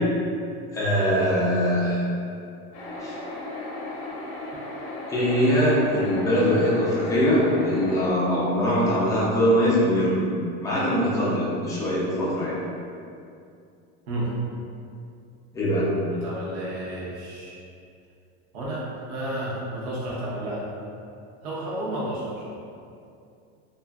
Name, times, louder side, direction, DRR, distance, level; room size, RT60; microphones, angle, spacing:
voice 1, 0.7-2.1 3.0-3.2 5.1-10.1 10.6-12.6 15.5-15.9, equal, 10° left, -8 dB, 0.3 m, -22 dB
sound 1, 2.7-8.1, left 1 dB, 45° left, 0.6 m, -35 dB
voice 2, 16.1-17.6 18.5-20.7 21.4-22.6, right 1 dB, 70° right, -7 dB, 0.8 m, -32 dB
2.9 x 2.4 x 2.3 m, 2.5 s
supercardioid pair, 160°, 32 cm